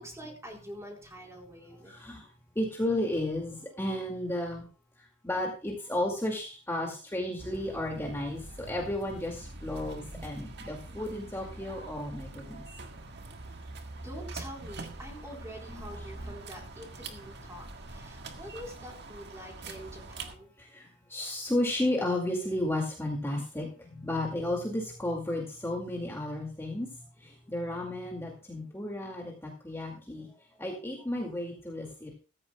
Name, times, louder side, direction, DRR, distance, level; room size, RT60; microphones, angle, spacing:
voice 1, 0.0-1.9 14.0-20.5, equal, 15° right, 0 dB, 4.1 m, -46 dB
voice 2, 1.9-2.3 2.6-4.6 5.2-12.7 15.7-15.9 16.2-16.3 20.6-26.9 27.2-30.3 30.6-32.1, left 1 dB, 15° left, -1 dB, 2.2 m, -33 dB
sound 1, 7.4-20.4, right 2 dB, 60° right, 1.6 m, -44 dB
15.0 x 14.5 x 2.3 m, 0.34 s
head